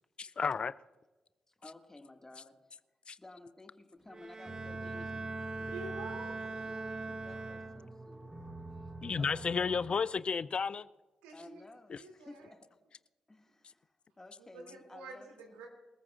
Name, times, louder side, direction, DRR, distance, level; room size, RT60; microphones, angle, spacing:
voice 1, 0.2-0.7 3.1-3.2 9.0-10.9 11.9-12.0, left 5 dB, 45° left, 16 dB, 0.4 m, -32 dB
voice 2, 1.5-2.8 3.2-5.7 6.6-6.8 7.1-8.4 9.2-9.7 11.3-12.7 13.3-15.3, left 2 dB, 20° left, 4 dB, 1.9 m, -55 dB
Bowed string instrument, 4.1-8.1, right 3 dB, 30° right, 0.9 m, -41 dB
sound 1, 4.5-9.8, right 1 dB, 15° right, 4.4 m, -47 dB
voice 3, 5.7-7.0 11.2-11.6 12.0-12.5 14.4-15.7, right 3 dB, 90° right, 1 dB, 2.7 m, -48 dB
26.5 x 14.0 x 2.5 m, 1.1 s
hypercardioid pair, 45°, 2 cm